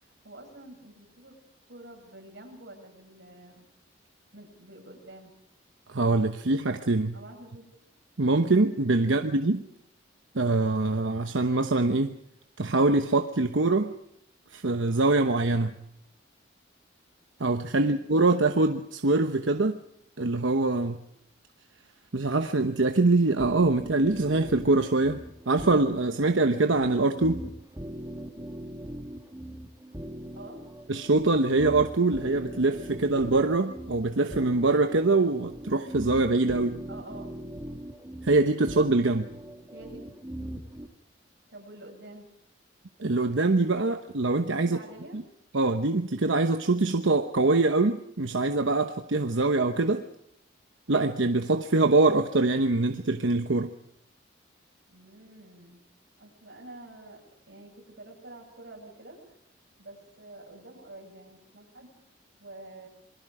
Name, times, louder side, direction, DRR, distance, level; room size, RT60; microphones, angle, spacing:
voice 1, 0.0-1.3 1.7-3.7 4.3-5.3 7.1-7.7 17.7-18.1 30.4-30.6 36.9-37.4 39.7-40.2 41.5-42.3 44.5-45.2 54.9-55.8 56.2-59.2 59.8-61.9 62.4-62.9, right 2 dB, 60° right, 0 dB, 7.7 m, -48 dB
voice 2, 5.9-7.1 8.2-9.6 10.3-12.1 12.6-13.9 14.5-15.8 17.4-19.8 20.2-21.0 22.1-27.4 30.9-36.8 38.2-39.3 43.0-44.8 45.1-45.2 45.5-50.1 50.9-53.7, right 2 dB, 90° right, 6 dB, 1.0 m, -24 dB
sound 1, 23.4-40.9, right 1 dB, 15° right, 1.9 m, -40 dB
27.5 x 22.0 x 5.0 m, 0.74 s
head